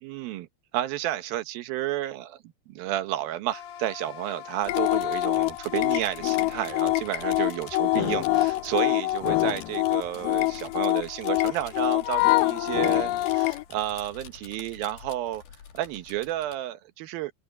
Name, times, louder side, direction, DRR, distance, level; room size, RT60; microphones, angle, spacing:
voice 1, 0.0-0.5 0.7-15.4 15.7-17.3, right 14 dB, 75° right, 2.7 m, -31 dB
sound 1, 3.5-14.0, left 10 dB, 45° left, 2.3 m, -46 dB
sound 2, 4.6-16.5, left 7 dB, 70° left, 4.5 m, -47 dB
sound 3, 4.7-13.6, left 18 dB, 85° left, 2.0 m, -25 dB
omnidirectional pair, 4.5 m